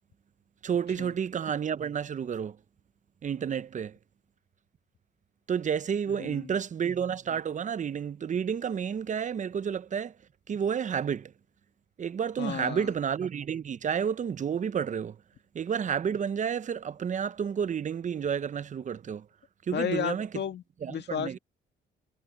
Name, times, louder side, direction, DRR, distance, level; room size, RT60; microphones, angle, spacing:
voice 1, 0.6-2.6 3.2-4.0 5.5-10.1 10.5-11.3 12.0-15.2 15.5-19.3 19.7-20.3 20.8-21.4, right 7 dB, 40° right, 0.6 m, -30 dB
voice 2, 6.1-6.6 12.4-12.9 19.7-20.6 20.9-21.4, left 8 dB, 60° left, 1.7 m, -33 dB
cardioid pair, 90°, 20 cm